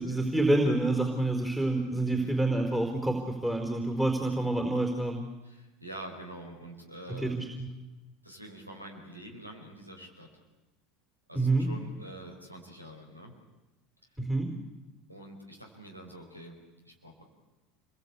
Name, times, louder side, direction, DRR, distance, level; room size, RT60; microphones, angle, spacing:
voice 1, 0.0-5.2 7.1-7.7 11.3-11.7 14.2-14.5, right 2 dB, 10° right, 2 dB, 4.7 m, -28 dB
voice 2, 2.0-2.4 5.4-7.4 8.2-10.3 11.3-13.3 15.1-16.6 16.8-17.2, right 1 dB, 90° right, 2 dB, 4.8 m, -46 dB
28.5 x 22.5 x 8.4 m, 1.1 s
figure-of-eight pair, 70°, 0 cm